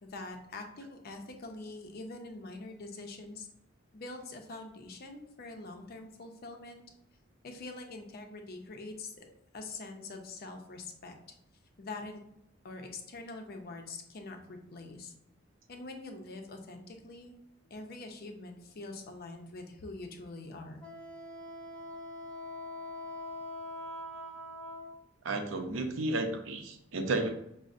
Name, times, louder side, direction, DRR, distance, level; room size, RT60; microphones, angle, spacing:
voice 1, 0.0-3.5 3.9-6.8 7.4-9.3 9.5-11.2 11.8-12.2 12.6-15.1 15.7-17.3 17.7-20.8, left 2 dB, 50° left, 4 dB, 0.5 m, -44 dB
Wind instrument woodwind instrument, 20.8-25.0, left 1 dB, 5° left, 0.4 m, -43 dB
voice 2, 25.2-27.3, right 2 dB, 80° right, 5 dB, 0.5 m, -32 dB
5.2 x 2.0 x 2.4 m, 0.80 s
head